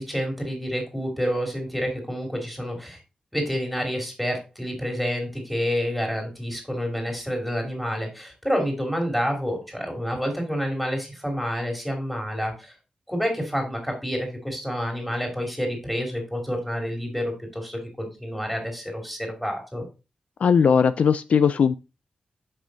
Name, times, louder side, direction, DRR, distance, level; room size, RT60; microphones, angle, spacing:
voice 1, 0.0-3.0 3.3-12.7 13.1-19.9, equal, ahead, 2.7 m, -28 dB
voice 2, 20.4-21.8, left 6 dB, 65° left, 0.4 m, -18 dB
7.7 x 5.5 x 4.0 m
wide cardioid pair, 165°, 2 cm